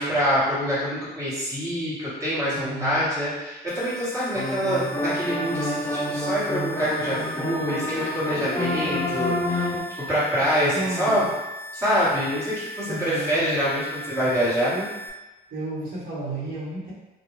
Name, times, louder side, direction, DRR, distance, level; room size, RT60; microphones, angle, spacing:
voice 1, 0.0-9.7 10.1-11.2 11.7-14.7, equal, 20° right, -11 dB, 1.4 m, -25 dB
voice 2, 2.5-3.1 10.7-11.3 12.9-13.4 14.7-14.9 15.5-16.9, right 2 dB, 55° right, -9 dB, 1.1 m, -32 dB
sound 1, 3.7-15.1, left 1 dB, 85° left, 0.4 m, -39 dB
sound 2, 4.3-9.8, left 1 dB, 15° left, 0.6 m, -28 dB
2.4 x 2.3 x 3.1 m, 1.1 s
cardioid pair, 110°, 17 cm